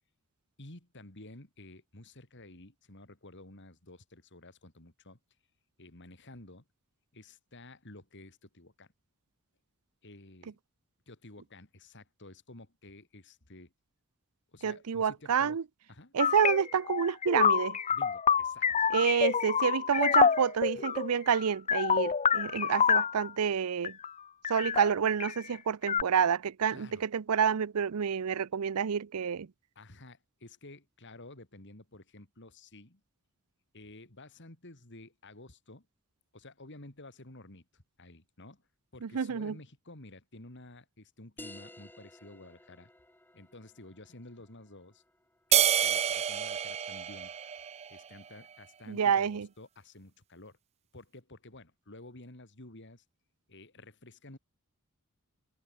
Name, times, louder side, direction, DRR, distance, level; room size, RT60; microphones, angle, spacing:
voice 1, 0.6-5.2 5.8-6.6 7.1-8.9 10.0-10.5 11.1-13.7 14.5-15.6 15.9-16.1 17.9-18.9 20.0-20.2 20.6-20.8 26.7-27.0 29.7-33.0 33.7-35.9 36.3-38.6 38.9-42.9 43.3-45.0 45.5-47.3 47.9-50.6 50.9-53.0 53.5-54.4, left 2 dB, 55° left, 3.2 m, -52 dB
voice 2, 14.6-15.6 16.1-17.8 18.9-24.0 24.5-29.5 39.0-39.5 48.9-49.5, right 7 dB, 90° right, 0.5 m, -28 dB
sound 1, 16.2-23.3 23.8-24.1 24.4-25.3 25.9-26.0, left 7 dB, 30° left, 0.6 m, -27 dB
sound 2, 41.4-46.5, left 1 dB, 10° left, 3.8 m, -54 dB
sound 3, 45.5-48.1, right 10 dB, 30° right, 0.4 m, -28 dB
head